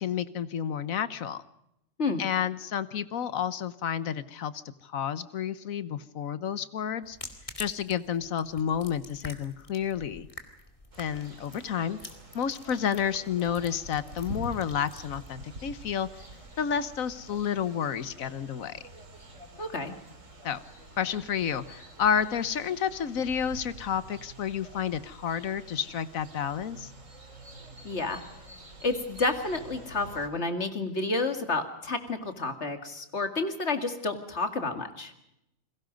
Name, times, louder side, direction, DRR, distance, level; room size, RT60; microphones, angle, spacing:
voice 1, 0.0-1.4 2.2-4.5 4.8-7.2 7.6-10.3 11.0-12.0 12.3-16.3 16.6-18.8 20.4-20.6 21.0-26.9, left 8 dB, 90° left, 14 dB, 1.4 m, -30 dB
sound 1, 7.0-17.8, left 2 dB, 25° left, 2.4 m, -49 dB
sound 2, 10.9-30.3, right 1 dB, 70° right, 3.7 m, -47 dB
voice 2, 19.6-19.9 27.8-28.2 28.8-35.1, left 3 dB, 55° left, 7 dB, 2.5 m, -30 dB
29.5 x 21.5 x 5.2 m, 0.85 s
omnidirectional pair, 1.4 m